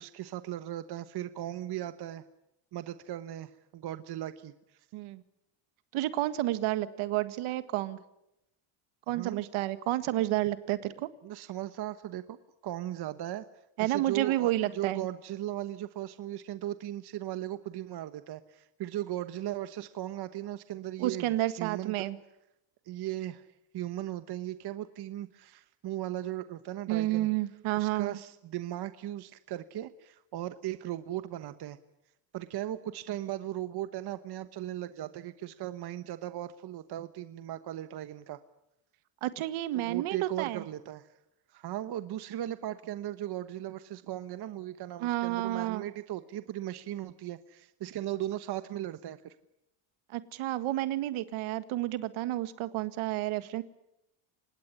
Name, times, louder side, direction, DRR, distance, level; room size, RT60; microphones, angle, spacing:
voice 1, 0.0-2.2 2.7-4.5 9.1-9.4 11.2-12.4 12.6-13.4 13.8-21.9 22.9-23.5 23.7-27.3 27.8-31.8 32.3-38.4 39.7-41.1 41.5-49.3, right 13 dB, 50° right, 12 dB, 1.2 m, -37 dB
voice 2, 4.9-5.2 5.9-8.0 9.1-11.1 13.8-15.1 21.0-22.2 26.9-28.2 39.2-40.6 45.0-45.9 50.1-53.6, right 15 dB, 75° right, 13 dB, 1.9 m, -30 dB
25.5 x 20.0 x 9.9 m, 0.86 s
cardioid pair, 115°, 50 cm